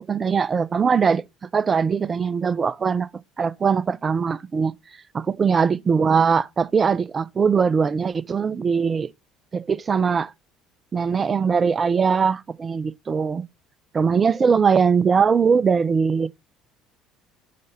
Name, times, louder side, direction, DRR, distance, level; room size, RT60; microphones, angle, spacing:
voice 1, 0.1-1.2 1.5-3.1 3.4-4.7 5.1-9.1 9.5-10.3 10.9-13.4 13.9-16.3, right 6 dB, 35° right, 0.6 m, -21 dB
6.7 x 3.2 x 5.6 m
hypercardioid pair, 70°, 0 cm